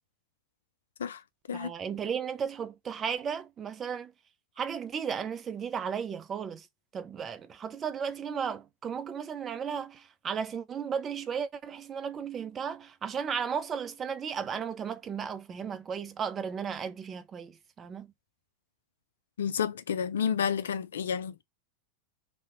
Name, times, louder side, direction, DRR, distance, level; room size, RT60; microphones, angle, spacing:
voice 1, 1.5-4.1 4.6-6.7 6.9-18.1, right 7 dB, 25° right, 0.4 m, -35 dB
voice 2, 19.4-21.4, left 7 dB, 65° left, 0.3 m, -30 dB
2.8 x 2.0 x 3.6 m
figure-of-eight pair, 90°, 0 cm